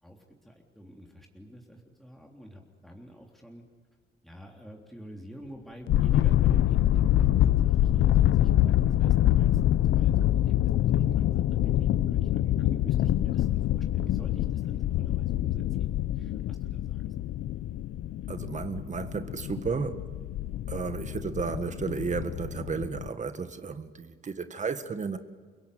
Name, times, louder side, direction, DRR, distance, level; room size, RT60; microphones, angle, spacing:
voice 1, 0.0-3.7 4.2-9.6 9.9-15.9 16.1-17.0, equal, ahead, 3.3 m, -48 dB
sound 1, 5.9-23.1, left 12 dB, 75° left, 0.7 m, -25 dB
voice 2, 18.3-20.1 20.7-25.2, right 5 dB, 40° right, 1.8 m, -33 dB
30.0 x 17.5 x 9.5 m
cardioid pair, 90°, 20 cm